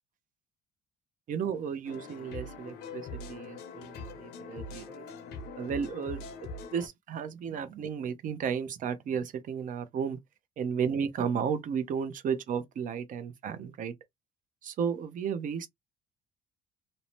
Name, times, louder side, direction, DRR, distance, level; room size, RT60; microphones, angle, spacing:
voice 1, 1.3-5.0 5.6-6.2 6.7-10.2 10.6-13.9 14.6-15.7, right 7 dB, 50° right, 0.6 m, -33 dB
sound 1, 1.8-6.9, left 3 dB, 75° left, 0.7 m, -42 dB
2.7 x 2.1 x 3.0 m
cardioid pair, 110°, 17 cm